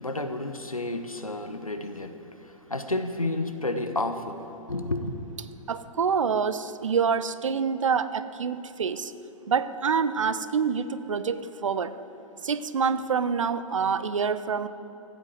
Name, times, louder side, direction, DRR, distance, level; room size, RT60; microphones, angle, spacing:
voice 1, 0.0-5.2, left 2 dB, 85° left, 8 dB, 1.1 m, -31 dB
voice 2, 5.7-9.1 9.5-11.9 12.4-14.7, right 6 dB, 65° right, 14 dB, 0.7 m, -26 dB
14.5 x 8.6 x 7.7 m, 2.9 s
figure-of-eight pair, 115°, 17 cm